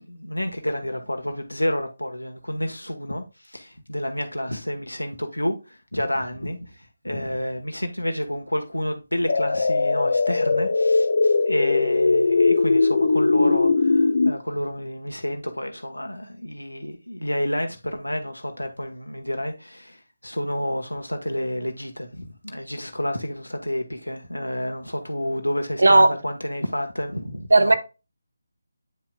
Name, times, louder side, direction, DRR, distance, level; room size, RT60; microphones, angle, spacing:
voice 1, 0.0-27.7, equal, 80° left, 1.3 m, -30 dB
sound 1, 9.3-14.3, left 3 dB, 50° left, 0.8 m, -20 dB
voice 2, 25.8-26.1 27.5-27.7, right 2 dB, 60° right, 1.2 m, -14 dB
9.1 x 5.8 x 2.3 m
figure-of-eight pair, 155°, 0 cm